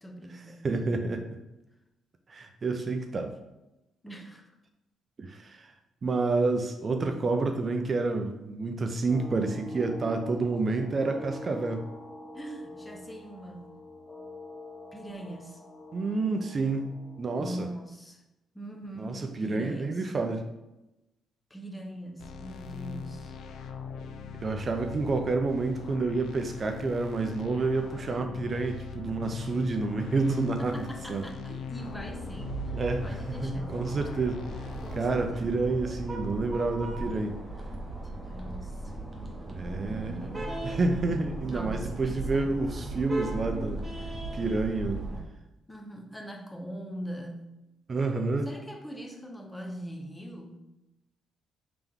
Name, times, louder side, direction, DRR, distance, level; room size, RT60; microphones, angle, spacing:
voice 1, 0.0-0.8 4.0-4.5 12.3-13.7 14.9-15.6 17.4-18.2 18.5-20.1 21.5-23.4 30.6-33.8 34.8-35.5 38.0-38.9 39.8-40.5 41.5-42.5 45.7-47.5 48.4-50.6, right 1 dB, 10° left, 3 dB, 0.6 m, -42 dB
voice 2, 0.6-1.2 2.3-3.3 5.2-5.7 6.0-11.8 15.9-16.9 17.2-17.7 19.0-20.4 24.4-31.2 32.7-37.4 39.5-40.2 40.6-43.8 44.3-45.0 47.9-48.5, right 3 dB, 40° right, 5 dB, 0.4 m, -29 dB
sound 1, 9.1-17.2, left 1 dB, 35° left, 1.0 m, -44 dB
sound 2, 22.2-35.1, left 6 dB, 75° left, 0.3 m, -40 dB
sound 3, 31.8-45.2, right 2 dB, 20° right, 0.9 m, -37 dB
3.5 x 2.9 x 3.5 m, 0.96 s
cardioid pair, 90°, 0 cm